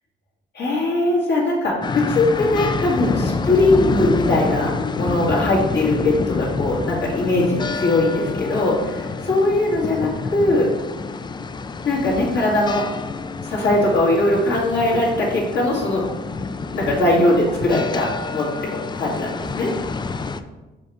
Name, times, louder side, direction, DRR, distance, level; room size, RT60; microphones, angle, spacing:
voice 1, 0.5-10.7 11.8-12.8 13.4-16.0 16.7-19.7, left 2 dB, 60° left, -4 dB, 2.1 m, -20 dB
sound 1, 1.8-20.4, left 4 dB, 25° left, 0.3 m, -28 dB
5.2 x 3.6 x 5.6 m, 1.2 s
cardioid pair, 90°, 20 cm